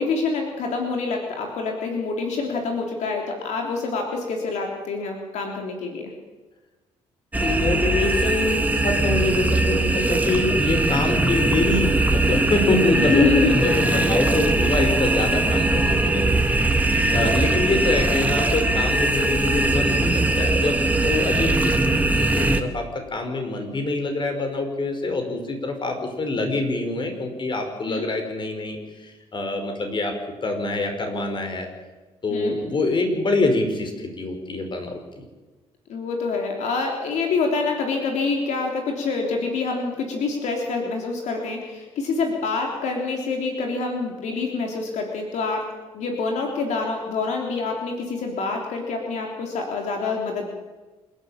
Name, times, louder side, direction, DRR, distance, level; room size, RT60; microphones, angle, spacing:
voice 1, 0.0-6.1 12.9-13.6 17.1-17.3 27.9-28.1 32.3-32.6 35.9-50.5, left 4 dB, 75° left, 2 dB, 3.6 m, -26 dB
sound 1, 7.3-22.6, right 2 dB, 15° right, 2.2 m, -21 dB
voice 2, 7.4-22.9 23.1-31.7 32.2-35.0, left 2 dB, 40° left, 5 dB, 5.4 m, -25 dB
27.5 x 12.0 x 8.9 m, 1.2 s
cardioid pair, 90°, 12 cm